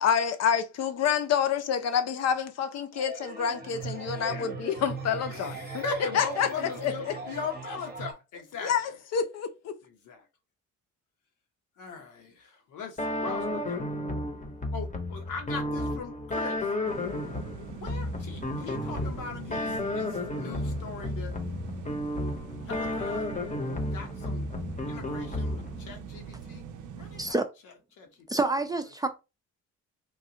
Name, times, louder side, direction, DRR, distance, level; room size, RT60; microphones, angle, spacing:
voice 1, 0.0-5.8 6.2-6.5 8.6-9.7, left 7 dB, 60° left, 0.6 m, -28 dB
sound 1, 2.9-8.1, right 4 dB, 35° right, 0.8 m, -39 dB
voice 2, 4.2-4.5 5.3-8.7 9.8-10.3 11.8-13.9 14.7-16.7 17.6-21.3 22.6-23.3 23.8-24.4 24.9-26.7 27.0-27.4 28.0-28.3, left 5 dB, 85° left, 1.0 m, -39 dB
sound 2, 13.0-25.9, left 1 dB, 25° left, 0.8 m, -32 dB
sound 3, 16.8-27.3, right 7 dB, 85° right, 0.6 m, -43 dB
voice 3, 28.3-29.1, right 2 dB, 15° right, 0.4 m, -27 dB
3.2 x 2.3 x 2.8 m
cardioid pair, 90°, 30 cm